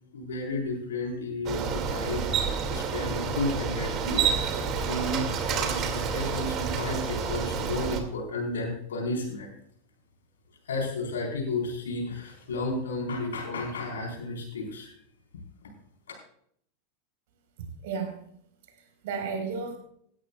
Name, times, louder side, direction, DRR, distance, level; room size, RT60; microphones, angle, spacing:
voice 1, 0.1-4.4 4.7-9.5 10.7-14.9, left 2 dB, 70° left, 0 dB, 4.2 m, -32 dB
Bicycle, 1.5-8.0, right 6 dB, 40° right, 2.2 m, -29 dB
voice 2, 17.6-18.2 18.8-19.8, right 5 dB, 60° right, 4 dB, 4.2 m, -34 dB
17.0 x 13.5 x 2.3 m, 0.66 s
figure-of-eight pair, 90°, 0 cm